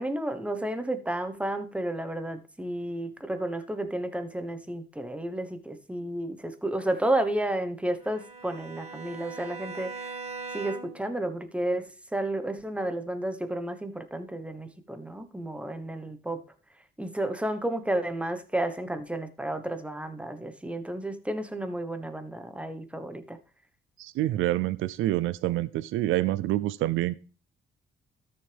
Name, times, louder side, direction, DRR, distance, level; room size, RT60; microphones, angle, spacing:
voice 1, 0.0-10.1 10.5-16.4 17.0-23.4, right 1 dB, 5° right, 1.1 m, -32 dB
Bowed string instrument, 8.0-11.1, right 4 dB, 30° right, 1.8 m, -40 dB
voice 2, 24.0-27.2, right 15 dB, 80° right, 0.5 m, -27 dB
13.0 x 6.6 x 3.4 m
cardioid pair, 90°, 20 cm